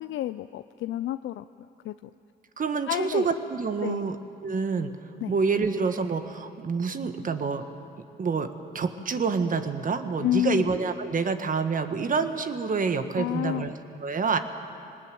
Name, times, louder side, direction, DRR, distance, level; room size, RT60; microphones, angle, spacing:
voice 1, 0.0-1.4 1.8-1.9 2.9-3.3 3.8-4.1 5.2-5.3 10.2-10.7 13.2-13.7, left 13 dB, 75° left, 11 dB, 0.5 m, -29 dB
voice 2, 2.6-4.2 4.4-4.9 5.3-7.6 8.2-8.5 8.7-14.4, right 5 dB, 45° right, 8 dB, 1.5 m, -27 dB
21.5 x 19.0 x 9.3 m, 2.6 s
cardioid pair, 90°, 20 cm